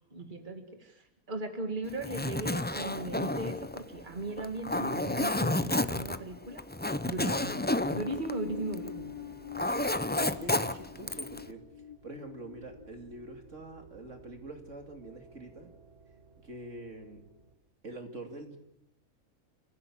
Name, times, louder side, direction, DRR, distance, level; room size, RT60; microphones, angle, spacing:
voice 1, 0.1-6.6 7.1-7.6 7.9-9.1, right 2 dB, 35° right, 5 dB, 2.6 m, -37 dB
Zipper (clothing), 1.9-9.0 9.3-11.4, left 1 dB, 10° left, 0.5 m, -31 dB
sound 1, 7.2-13.6, left 11 dB, 90° left, 2.3 m, -45 dB
sound 2, 7.4-17.5, right 4 dB, 90° right, 4.2 m, -57 dB
voice 2, 10.2-11.6 12.0-15.7 16.4-17.2 17.8-18.6, right 2 dB, 60° right, 5 dB, 2.9 m, -45 dB
29.5 x 15.5 x 8.7 m, 0.83 s
omnidirectional pair, 1.5 m